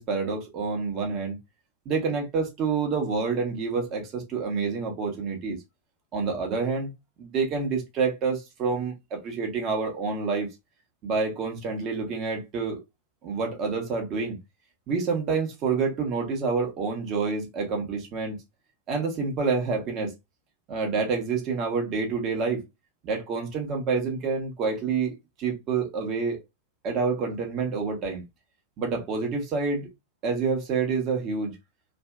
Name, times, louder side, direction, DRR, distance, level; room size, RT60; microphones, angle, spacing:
voice 1, 0.0-1.4 1.9-5.6 6.1-6.9 7.2-10.5 11.0-12.8 13.2-14.4 14.9-18.4 18.9-20.1 20.7-22.6 23.0-26.4 26.8-28.2 28.8-29.9 30.2-31.6, right 4 dB, 35° right, 0.7 m, -28 dB
2.5 x 2.2 x 2.2 m
figure-of-eight pair, 90°, 0 cm